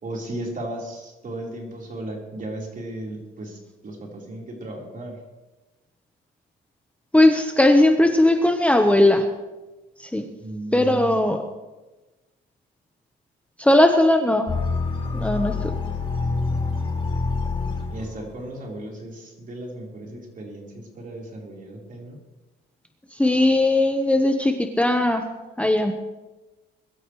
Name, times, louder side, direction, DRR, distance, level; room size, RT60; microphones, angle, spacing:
voice 1, 0.0-5.2 10.4-11.2 17.5-22.2, right 1 dB, 45° right, -1 dB, 4.3 m, -35 dB
voice 2, 7.1-9.2 10.1-10.2 10.7-11.4 13.6-14.5 15.1-15.7 23.1-25.2 25.6-25.9, left 1 dB, 5° left, 4 dB, 1.1 m, -18 dB
sound 1, 14.5-18.3, left 4 dB, 25° left, 4.9 m, -26 dB
22.0 x 13.0 x 3.2 m, 1.1 s
cardioid pair, 90°, 20 cm